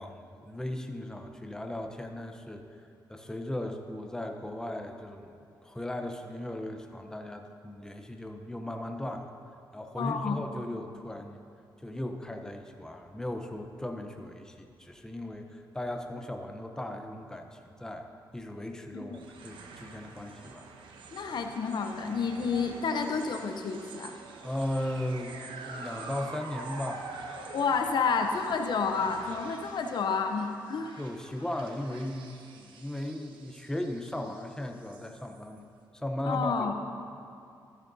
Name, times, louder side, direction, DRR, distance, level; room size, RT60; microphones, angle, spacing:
voice 1, 0.0-2.6 3.1-5.3 5.6-9.3 9.7-11.4 11.8-20.7 24.4-25.4 25.6-27.2 31.0-35.6 35.9-36.8, left 1 dB, 5° left, 5 dB, 0.8 m, -37 dB
voice 2, 10.0-10.3 18.9-19.2 21.1-24.1 27.5-31.0 36.2-36.7, left 5 dB, 65° left, 5 dB, 0.7 m, -30 dB
sound 1, 19.1-35.6, right 4 dB, 85° right, 0.8 m, -46 dB
13.0 x 10.5 x 2.7 m, 2.5 s
cardioid pair, 70°, 8 cm